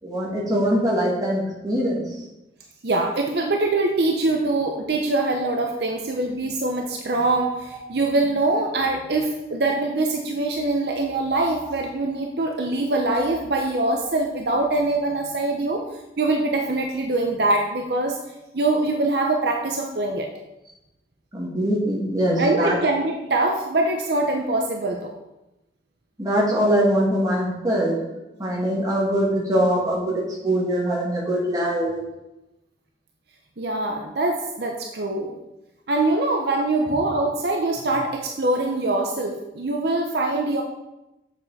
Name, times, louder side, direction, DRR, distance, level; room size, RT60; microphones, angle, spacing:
voice 1, 0.0-2.1 21.3-22.8 26.2-28.0 28.4-32.0 37.8-37.9, equal, 20° right, -5 dB, 2.2 m, -22 dB
voice 2, 2.8-15.8 16.2-18.2 18.5-20.3 22.4-25.1 33.6-35.3 35.9-40.6, right 2 dB, 60° right, 2 dB, 0.8 m, -23 dB
7.2 x 7.0 x 4.2 m, 0.95 s
head